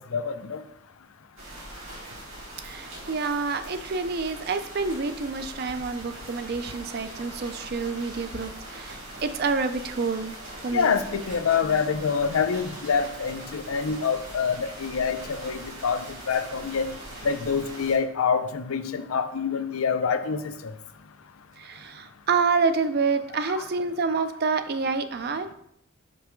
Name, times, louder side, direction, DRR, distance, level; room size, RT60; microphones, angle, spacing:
voice 1, 0.1-0.6 10.7-16.0 16.3-16.9 17.2-20.7 23.4-23.6, left 6 dB, 85° left, 10 dB, 0.5 m, -26 dB
sound 1, 1.4-18.0, right 1 dB, 80° right, 2.2 m, -41 dB
voice 2, 2.6-10.3 10.6-11.0 21.6-25.5, right 4 dB, 50° right, 10 dB, 0.4 m, -28 dB
5.8 x 5.2 x 3.1 m, 0.73 s
head